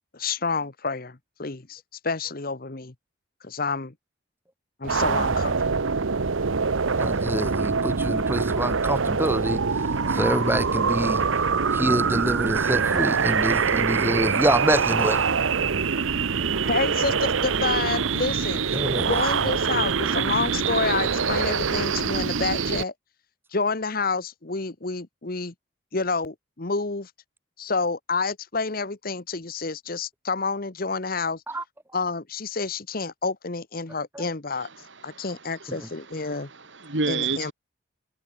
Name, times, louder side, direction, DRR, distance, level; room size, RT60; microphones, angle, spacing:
voice 1, 0.1-2.9 3.4-3.9 4.8-5.6 8.0-8.1 16.7-18.6 19.1-22.9 23.5-25.5 25.9-27.1 27.6-31.4 31.9-34.7 35.0-36.5 37.1-37.5, left 4 dB, 45° left, 1.2 m, -29 dB
sound 1, 4.8-22.8, right 5 dB, 85° right, 0.9 m, -24 dB
voice 2, 7.0-9.6 10.1-11.2 11.7-15.2 18.7-19.2 31.5-31.6 34.2-34.3 35.8-35.9, right 1 dB, 10° right, 1.9 m, -26 dB
voice 3, 34.6-37.5, right 4 dB, 65° right, 2.7 m, -32 dB
head